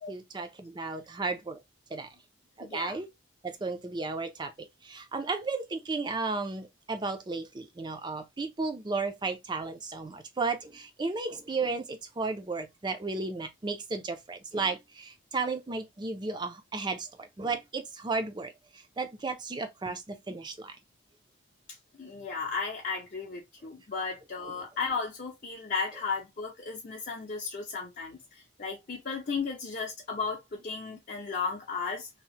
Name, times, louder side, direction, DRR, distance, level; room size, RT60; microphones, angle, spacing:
voice 1, 0.1-1.6 1.9-2.1 2.6-3.1 3.4-18.5 19.0-20.8, right 3 dB, 25° right, 0.4 m, -34 dB
voice 2, 2.6-2.9 22.0-28.2 28.6-32.1, left 5 dB, 45° left, 0.6 m, -34 dB
2.8 x 2.0 x 3.0 m
head